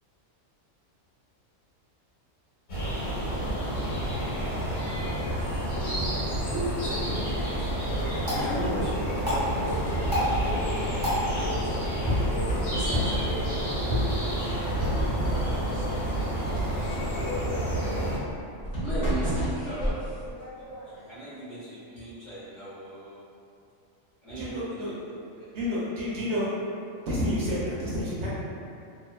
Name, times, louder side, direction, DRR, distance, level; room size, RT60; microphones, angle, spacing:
sound 1, 2.7-18.2, right 1 dB, 85° left, 1.3 m, -29 dB
sound 2, 5.8-6.6 7.1-8.4 8.9-11.0 11.3-11.9 12.2-14.1 14.7-15.8 16.5-21.0, right 1 dB, 65° left, 1.4 m, -34 dB
voice 1, 6.5-7.6 7.9-8.9 9.2-11.7 12.6-14.3 15.3-17.7 18.8-20.0 21.0-23.3 24.2-25.5, right 1 dB, 45° left, -12 dB, 0.7 m, -38 dB
sound 3, 8.2-17.2, left 1 dB, 25° right, 1.2 m, -33 dB
voice 2, 24.4-24.9 25.5-26.6 27.1-28.3, left 1 dB, 65° right, -8 dB, 0.8 m, -29 dB
2.8 x 2.0 x 2.3 m, 2.5 s
omnidirectional pair, 1.4 m